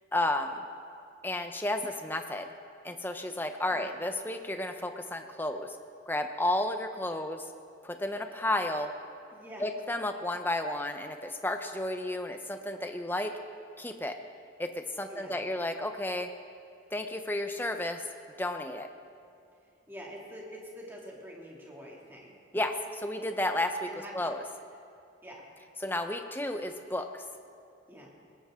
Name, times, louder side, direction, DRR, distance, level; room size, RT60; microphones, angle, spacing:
voice 1, 0.1-0.6 1.2-2.5 2.8-5.8 6.1-7.5 7.8-8.9 9.6-13.3 13.8-14.2 14.6-16.3 16.9-18.0 18.4-18.9 22.5-23.9 24.1-24.4 25.8-27.2, left 1 dB, 10° left, 6 dB, 0.8 m, -32 dB
voice 2, 3.7-4.0 9.3-9.7 15.0-15.5 19.6-22.3 23.8-24.3 25.2-25.5 27.9-28.1, equal, 10° right, -3 dB, 2.6 m, -46 dB
20.5 x 18.0 x 3.8 m, 2.4 s
head